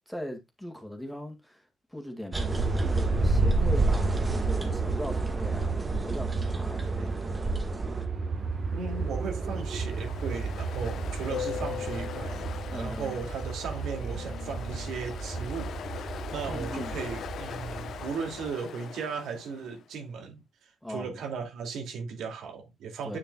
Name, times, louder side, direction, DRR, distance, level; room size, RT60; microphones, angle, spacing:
voice 1, 0.1-1.6 1.9-7.6 12.7-13.2 16.5-17.0 20.8-21.2 23.0-23.2, equal, ahead, 2.1 m, -40 dB
sound 1, 2.3-8.0, right 2 dB, 20° right, 1.6 m, -29 dB
Aircraft, 2.3-18.5, right 4 dB, 40° right, 1.3 m, -33 dB
Ocean, 8.7-19.8, left 9 dB, 65° left, 0.9 m, -40 dB
voice 2, 8.7-15.7 16.0-23.2, right 5 dB, 85° right, 2.5 m, -37 dB
9.1 x 6.9 x 2.3 m
cardioid pair, 145°, 0 cm